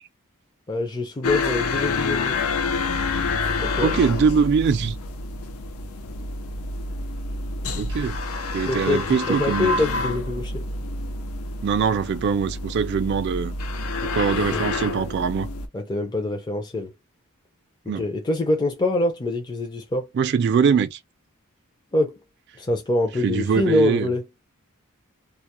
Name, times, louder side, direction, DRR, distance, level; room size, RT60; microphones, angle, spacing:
voice 1, 0.7-2.4 3.6-3.9 8.6-10.7 14.4-14.6 15.7-16.9 17.9-20.1 21.9-22.2 22.6-24.2, left 2 dB, 20° left, 0.4 m, -25 dB
sound 1, 1.2-15.7, left 3 dB, 80° left, 0.5 m, -28 dB
voice 2, 3.8-5.0 7.8-8.2 8.5-9.7 11.6-13.5 14.0-15.5 17.9-18.0 20.1-21.0 23.2-24.1, right 6 dB, 50° right, 0.3 m, -22 dB
2.2 x 2.0 x 2.9 m
head